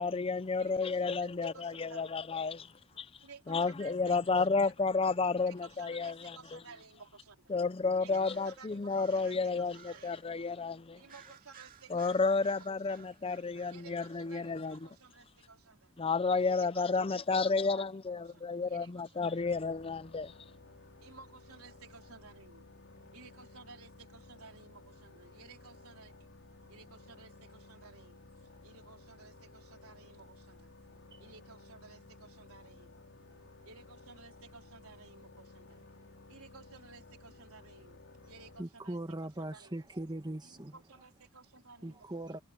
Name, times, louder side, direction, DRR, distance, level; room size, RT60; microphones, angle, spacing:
voice 1, 0.0-2.7 3.0-3.1 3.5-6.6 7.5-11.0 11.9-14.8 16.0-20.3, left 4 dB, 25° left, 0.5 m, -31 dB
voice 2, 0.6-2.1 3.2-5.0 5.5-7.5 8.0-10.2 10.9-13.0 13.7-15.9 16.7-19.5 21.0-22.7 23.1-26.1 26.7-30.7 31.2-33.0 33.7-35.8 36.3-39.8 40.4-42.4, right 4 dB, 90° right, 3.9 m, -56 dB
sound 1, 8.1-10.4 11.1-15.1, right 8 dB, 40° right, 2.3 m, -58 dB
sound 2, 19.4-38.6, left 2 dB, 60° left, 4.2 m, -56 dB
voice 3, 35.9-36.3 38.6-40.8 41.8-42.4, right 1 dB, 20° right, 1.6 m, -41 dB
head